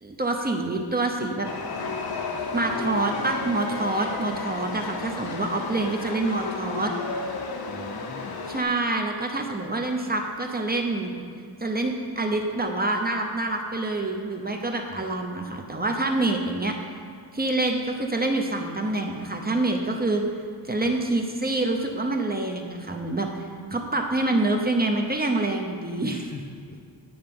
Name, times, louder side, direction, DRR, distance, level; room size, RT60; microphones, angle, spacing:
voice 1, 0.0-1.5 2.5-6.9 8.5-11.2 11.6-16.8 17.3-20.2 20.7-23.3 23.7-26.2, right 2 dB, 20° right, 2 dB, 0.6 m, -26 dB
Chatter / Subway metro underground, 1.4-8.6, left 4 dB, 55° left, 0.8 m, -33 dB
voice 2, 7.7-8.4 14.9-15.1 20.8-20.9 26.0-26.8, left 2 dB, 20° left, 1 dB, 0.5 m, -40 dB
9.5 x 5.6 x 5.2 m, 2.3 s
wide cardioid pair, 145°, 46 cm